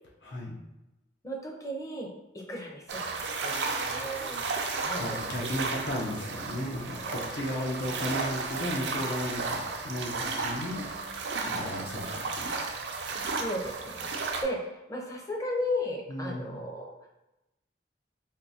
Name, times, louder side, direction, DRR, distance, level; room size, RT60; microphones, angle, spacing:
voice 1, 0.2-0.6 4.5-10.9 11.4-12.5 16.1-16.6, left 1 dB, 80° left, -2 dB, 0.7 m, -35 dB
voice 2, 1.2-2.1 2.3-4.4 4.8-5.5 7.0-7.3 11.4-11.6 13.4-14.1 14.4-16.9, left 1 dB, 20° left, -1 dB, 0.6 m, -35 dB
sound 1, 2.9-14.4, right 4 dB, 80° right, 0.5 m, -33 dB
3.6 x 2.7 x 2.7 m, 0.96 s
head